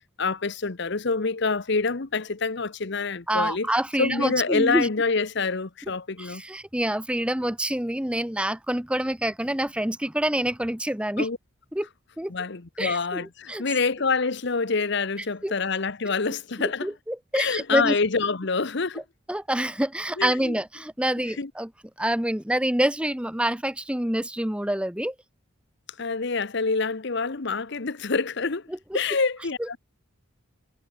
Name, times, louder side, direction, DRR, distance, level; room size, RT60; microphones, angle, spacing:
voice 1, 0.2-3.7 4.0-6.4 11.2-11.4 12.3-16.9 17.3-19.0 20.2-20.5 21.3-21.5 26.0-28.7 28.9-29.8, left 4 dB, 55° left, 0.9 m, -26 dB
voice 2, 3.3-4.9 6.2-11.3 11.7-11.9 12.2-12.3 12.8-13.6 15.4-15.5 16.6-18.0 19.3-21.7 22.0-25.1 28.9-29.0 29.6-29.8, right 1 dB, 5° right, 0.7 m, -27 dB
head